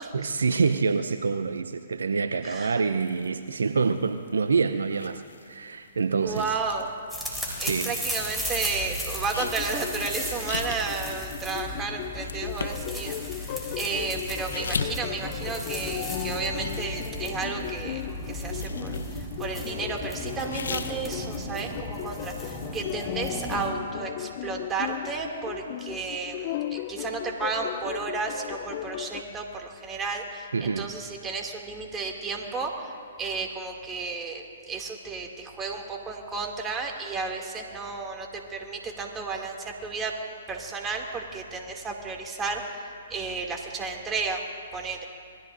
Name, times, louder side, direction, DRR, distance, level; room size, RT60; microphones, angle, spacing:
voice 1, 0.1-5.2 5.5-6.5 7.6-7.9 30.5-30.9, right 4 dB, 75° right, 10 dB, 0.7 m, -26 dB
voice 2, 2.4-2.8 6.2-6.9 7.6-18.0 18.3-32.9 33.2-40.1 40.5-42.6 43.1-44.4 44.7-45.1, right 4 dB, 15° right, 1 dB, 2.4 m, -33 dB
sound 1, 3.0-8.4 8.7-16.0 16.3-18.0 18.3-19.5 20.0-21.5, left 5 dB, 75° left, 0.9 m, -39 dB
sound 2, 7.1-23.7, equal, ahead, 4.1 m, -35 dB
sound 3, 9.4-29.2, left 14 dB, 45° left, 0.5 m, -37 dB
26.5 x 21.0 x 2.6 m, 2.3 s
figure-of-eight pair, 125°, 0 cm